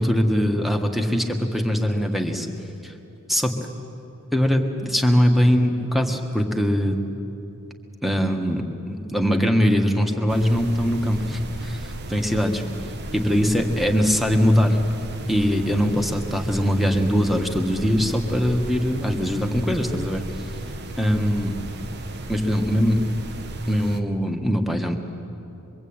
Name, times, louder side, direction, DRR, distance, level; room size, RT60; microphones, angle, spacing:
voice 1, 0.0-2.5 2.8-2.9 3.3-3.5 4.3-7.0 8.0-12.6 13.1-14.8 15.3-20.2 21.0-21.5 22.3-23.0 23.7-25.0, equal, ahead, 3 dB, 1.7 m, -21 dB
sound 1, 10.3-24.0, right 1 dB, 50° right, 1.2 m, -35 dB
25.0 x 23.0 x 8.8 m, 2.8 s
head